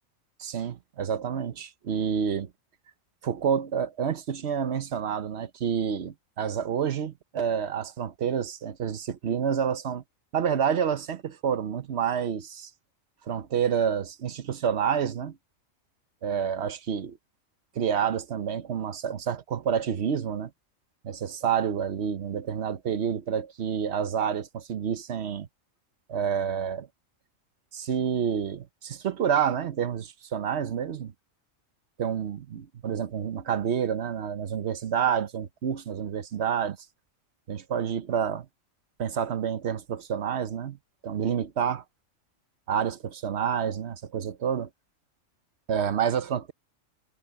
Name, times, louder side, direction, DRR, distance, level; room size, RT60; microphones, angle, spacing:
voice 1, 0.4-2.5 3.2-10.0 10.3-12.7 13.3-15.4 16.2-17.2 17.7-20.5 21.0-25.5 26.1-26.9 27.7-31.1 32.0-36.8 37.5-38.5 39.0-40.8 41.0-41.8 42.7-44.7 45.7-46.5, right 8 dB, 55° right, 1.1 m, -28 dB
omnidirectional pair, 1.4 m